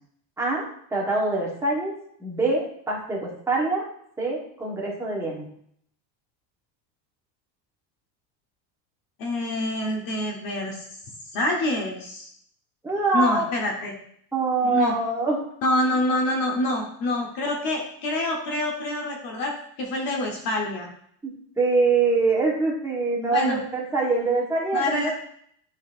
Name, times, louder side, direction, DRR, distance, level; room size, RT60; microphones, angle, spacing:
voice 1, 0.9-1.9 2.2-3.8 4.2-5.5 12.8-13.4 14.3-15.4 21.2-21.3 21.6-25.1, right 3 dB, 5° right, -4 dB, 1.2 m, -24 dB
voice 2, 9.2-10.8 11.3-12.3 13.1-14.0 14.7-15.0 15.6-20.9 23.3-23.6 24.7-25.1, left 1 dB, 40° left, 1 dB, 1.1 m, -26 dB
11.0 x 4.1 x 2.5 m, 0.65 s
cardioid pair, 170°, 50 cm